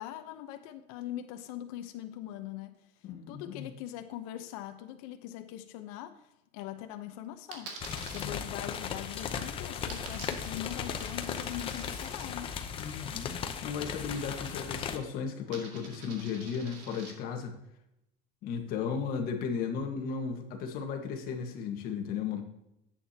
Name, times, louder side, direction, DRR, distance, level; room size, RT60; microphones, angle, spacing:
voice 1, 0.0-2.8 3.3-6.2 6.5-7.7 8.1-12.5, left 12 dB, 70° left, 7 dB, 0.9 m, -41 dB
voice 2, 3.0-3.7 8.1-8.4 12.8-17.5 18.4-22.4, left 6 dB, 50° left, 4 dB, 1.5 m, -35 dB
Coin (dropping), 7.5-8.2 9.9-12.3 14.1-14.8 15.1-17.1, right 5 dB, 65° right, 2.2 m, -48 dB
sound 1, 7.8-15.0, left 7 dB, 25° left, 0.8 m, -37 dB
10.5 x 8.5 x 2.9 m, 0.86 s
cardioid pair, 155°, 20 cm